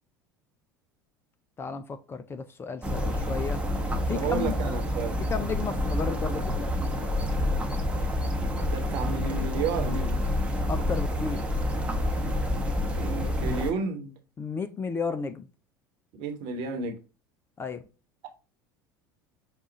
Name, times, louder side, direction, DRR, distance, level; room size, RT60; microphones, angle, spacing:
voice 1, 1.6-3.6 4.1-4.8 5.3-6.7 10.7-11.5 14.4-15.5 17.6-17.8, left 5 dB, 20° left, 0.4 m, -33 dB
sound 1, 2.8-13.7, left 1 dB, 10° right, 0.9 m, -28 dB
voice 2, 4.1-5.2 8.7-10.3 13.0-14.1 16.1-17.0, right 5 dB, 50° right, 1.1 m, -32 dB
5.3 x 2.4 x 4.0 m
figure-of-eight pair, 70°, 11 cm